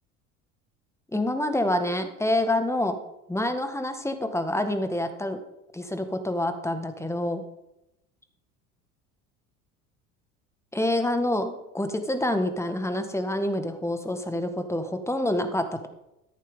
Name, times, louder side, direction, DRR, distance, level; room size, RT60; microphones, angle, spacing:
voice 1, 1.1-3.0 3.3-5.4 5.7-7.4 10.7-15.9, left 1 dB, 5° left, 8 dB, 1.6 m, -27 dB
13.0 x 11.5 x 3.7 m, 0.89 s
figure-of-eight pair, 65°, 45 cm